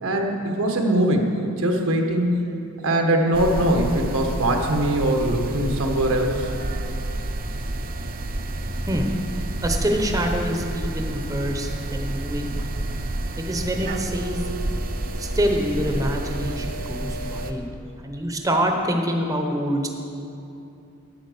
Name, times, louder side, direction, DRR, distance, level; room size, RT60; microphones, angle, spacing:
voice 1, 0.0-2.4 2.8-6.5, right 1 dB, 85° right, 2 dB, 1.3 m, -22 dB
sound 1, 3.3-17.5, right 1 dB, 45° right, 0.6 m, -29 dB
voice 2, 9.6-12.7 13.4-14.4 15.2-17.7 18.0-19.9, equal, 15° right, 3 dB, 0.8 m, -25 dB
8.9 x 8.7 x 6.6 m, 2.8 s
head